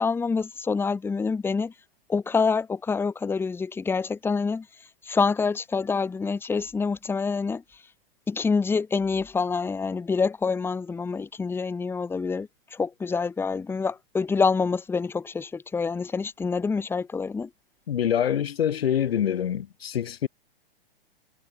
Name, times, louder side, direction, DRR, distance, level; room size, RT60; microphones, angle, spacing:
voice 1, 0.0-1.7 2.1-4.7 5.0-7.6 8.3-17.5, left 5 dB, 10° left, 1.1 m, -26 dB
voice 2, 17.9-20.3, left 9 dB, 80° left, 1.3 m, -25 dB
hypercardioid pair, 130°, 30 cm